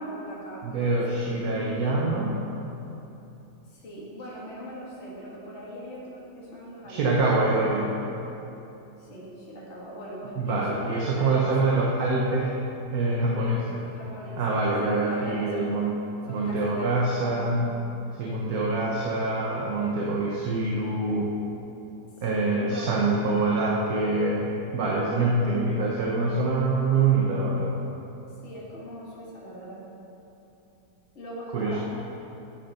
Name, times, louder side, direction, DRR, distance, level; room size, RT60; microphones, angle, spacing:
voice 1, 0.0-1.2 3.7-7.9 9.0-11.9 13.9-15.8 16.3-17.7 18.8-19.0 22.3-23.1 25.4-25.7 28.4-29.9 31.1-31.8, equal, 45° left, -6 dB, 2.1 m, -41 dB
voice 2, 0.6-2.4 6.9-7.9 10.4-12.6 12.9-13.8 14.4-16.0 16.3-17.8 18.2-21.3 22.2-27.7 31.5-31.8, right 3 dB, 65° right, -3 dB, 1.5 m, -25 dB
9.9 x 8.8 x 5.5 m, 2.9 s
omnidirectional pair, 1.7 m